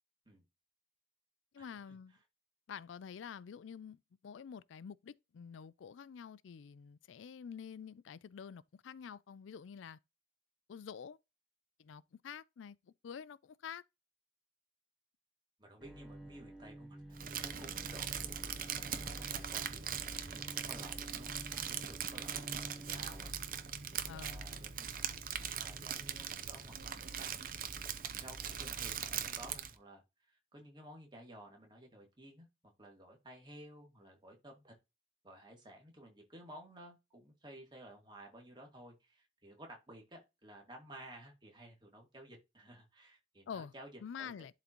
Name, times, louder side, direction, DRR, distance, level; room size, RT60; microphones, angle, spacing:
voice 1, 1.5-2.2 2.7-10.0 10.7-11.2 11.8-13.8 24.1-24.4 43.5-43.7 44.0-44.5, left 7 dB, 90° left, 0.4 m, -48 dB
voice 2, 15.6-23.3 23.6-25.0 25.3-27.6 28.2-32.5 32.8-34.7 35.2-43.9 44.2-44.3, right 1 dB, 25° right, 2.1 m, -55 dB
Bowed string instrument, 15.8-23.3, right 1 dB, ahead, 1.4 m, -51 dB
Crumpling crinkling, 17.1-29.7, right 8 dB, 45° right, 0.7 m, -41 dB
11.5 x 3.8 x 3.0 m
head